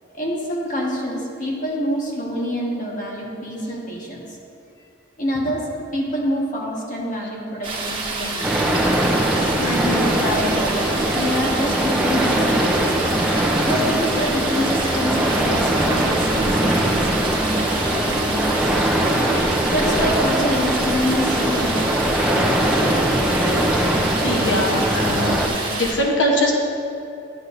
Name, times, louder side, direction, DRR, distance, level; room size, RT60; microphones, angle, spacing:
voice 1, 0.1-4.2 5.2-5.6 5.9-8.7 9.6-13.0 13.6-19.0 19.7-22.1, equal, 45° left, -2 dB, 1.4 m, -27 dB
sound 1, 7.6-25.9, right 3 dB, 25° right, 1.3 m, -28 dB
sound 2, 8.4-25.5, right 1 dB, 5° right, 0.6 m, -21 dB
voice 2, 24.2-25.4 25.7-26.5, left 1 dB, 80° left, -1 dB, 1.1 m, -21 dB
11.0 x 8.1 x 2.7 m, 2.7 s
head